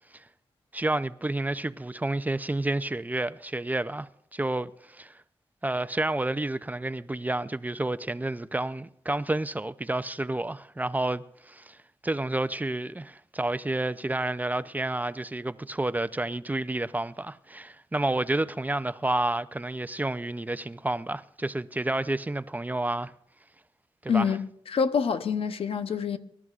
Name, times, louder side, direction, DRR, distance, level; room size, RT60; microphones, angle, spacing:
voice 1, 0.7-5.1 5.6-11.8 12.0-23.1 24.0-24.3, right 2 dB, 15° right, 0.5 m, -30 dB
voice 2, 24.1-26.2, left 6 dB, 85° left, 0.7 m, -26 dB
25.0 x 12.5 x 2.4 m
cardioid pair, 70°, 10 cm